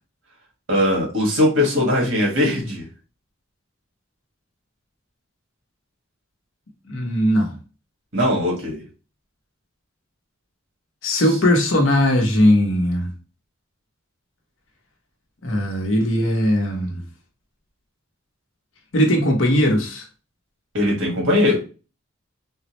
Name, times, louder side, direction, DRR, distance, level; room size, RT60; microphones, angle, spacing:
voice 1, 0.7-2.8 8.1-8.8 11.2-11.3 20.7-21.6, left 1 dB, 75° right, 1.4 m, -20 dB
voice 2, 6.9-7.5 11.0-13.1 15.4-17.0 18.9-20.1, equal, 70° left, 0.9 m, -19 dB
3.7 x 2.1 x 2.9 m
head